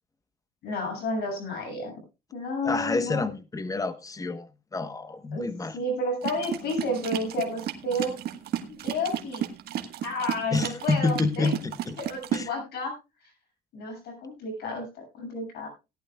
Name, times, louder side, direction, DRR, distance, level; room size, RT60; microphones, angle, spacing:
voice 1, 0.6-1.9 2.3-3.3 5.3-5.4 5.7-8.2 8.8-9.4 10.0-11.5 12.0-12.9 13.7-15.7, left 1 dB, 75° left, 3 dB, 7.0 m, -31 dB
voice 2, 2.6-4.5 4.7-5.8 8.6-8.8 10.5-12.0 12.3-12.5, left 3 dB, 20° left, 12 dB, 1.1 m, -28 dB
sound 1, 6.2-12.5, right 11 dB, 70° right, 1.5 m, -33 dB
18.0 x 11.0 x 2.3 m, 0.27 s
cardioid pair, 110°, 17 cm